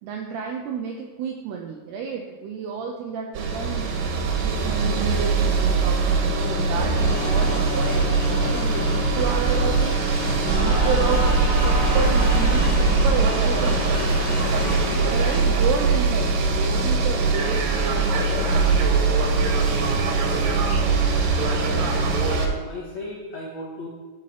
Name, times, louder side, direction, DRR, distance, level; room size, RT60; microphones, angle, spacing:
voice 1, 0.0-3.9 4.4-10.0 10.4-14.1 15.0-19.3 20.0-20.4 20.8-21.9, right 5 dB, 85° right, 2 dB, 2.3 m, -31 dB
sound 1, 3.4-22.5, right 4 dB, 65° right, 2.9 m, -22 dB
sound 2, 7.0-15.4, left 1 dB, 40° left, 1.4 m, -33 dB
sound 3, 10.5-15.9, right 2 dB, 30° right, 1.4 m, -24 dB
voice 2, 14.6-15.0 19.6-20.6 21.4-22.0 22.3-23.9, left 2 dB, 85° left, -4 dB, 1.5 m, -37 dB
12.0 x 5.5 x 6.6 m, 1.2 s
omnidirectional pair, 5.8 m